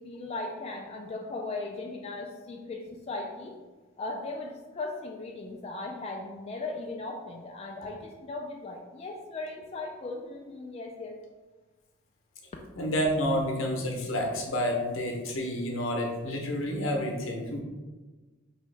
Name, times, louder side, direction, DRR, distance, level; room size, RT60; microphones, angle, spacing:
voice 1, 0.0-3.6 4.0-11.2, left 2 dB, 30° left, 0 dB, 0.3 m, -38 dB
voice 2, 12.8-17.6, equal, 80° left, 1 dB, 0.8 m, -29 dB
4.6 x 3.0 x 3.3 m, 1.3 s
head